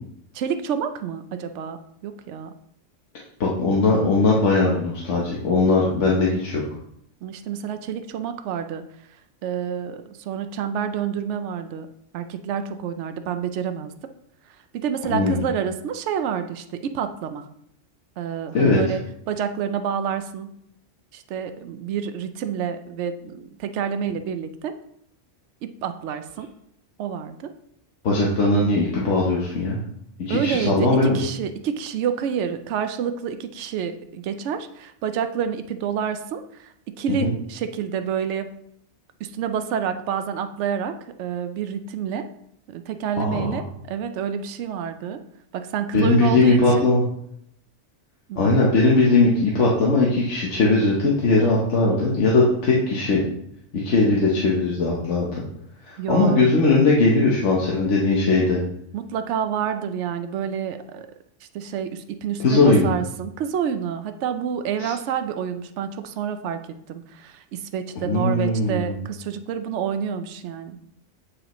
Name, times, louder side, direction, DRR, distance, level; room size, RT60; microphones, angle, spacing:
voice 1, 0.3-1.8 2.0-2.5 7.2-8.8 9.4-11.9 12.1-13.9 14.7-17.5 18.2-19.0 19.3-20.5 21.1-24.8 25.8-26.5 27.0-27.5 30.3-38.5 39.2-42.3 42.7-45.2 45.5-46.9 48.3-48.6 56.0-56.5 58.9-61.1 61.5-70.8, right 8 dB, 75° right, 9 dB, 0.9 m, -28 dB
voice 2, 3.4-6.6 15.1-15.4 18.5-18.8 28.0-29.8 30.3-31.2 37.1-37.3 43.1-43.6 45.9-47.0 48.4-53.2 53.7-55.4 55.8-58.6 62.4-63.0 64.8-64.9 68.0-68.9, left 3 dB, 75° left, -4 dB, 1.3 m, -19 dB
8.4 x 4.9 x 3.0 m, 0.73 s
omnidirectional pair, 1.3 m